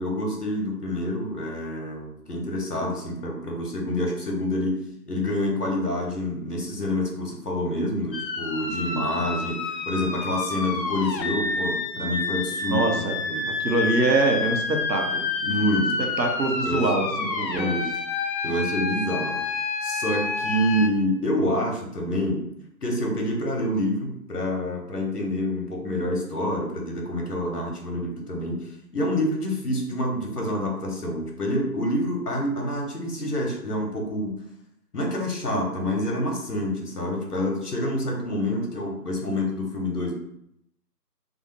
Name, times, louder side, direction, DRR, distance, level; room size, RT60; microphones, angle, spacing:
voice 1, 0.0-4.8 5.1-13.5 15.4-16.0 16.6-16.8 17.5-17.9 18.4-19.4 19.8-22.4 22.8-28.6 28.9-34.4 34.9-40.1, left 1 dB, 65° left, 1 dB, 0.9 m, -27 dB
sound 1, 8.1-20.9, left 4 dB, 85° left, 0.6 m, -29 dB
voice 2, 12.7-13.2 13.5-15.3 16.2-17.8, right 3 dB, 85° right, 2 dB, 0.7 m, -24 dB
2.6 x 2.0 x 3.0 m, 0.76 s
figure-of-eight pair, 170°, 50 cm